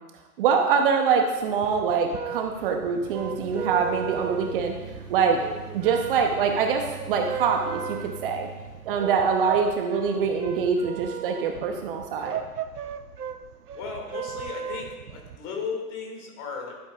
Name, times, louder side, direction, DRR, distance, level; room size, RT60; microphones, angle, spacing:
voice 1, 0.4-4.7 5.1-5.4 5.7-8.5 8.8-12.4, right 6 dB, 35° right, 4 dB, 0.8 m, -24 dB
sound 1, 1.4-15.4, right 7 dB, 80° right, 0.7 m, -36 dB
sound 2, 2.6-9.2, right 4 dB, 60° right, 2.0 m, -42 dB
voice 2, 13.7-16.7, left 5 dB, 35° left, 1 dB, 2.2 m, -35 dB
11.5 x 8.4 x 2.4 m, 1.2 s
figure-of-eight pair, 115°, 46 cm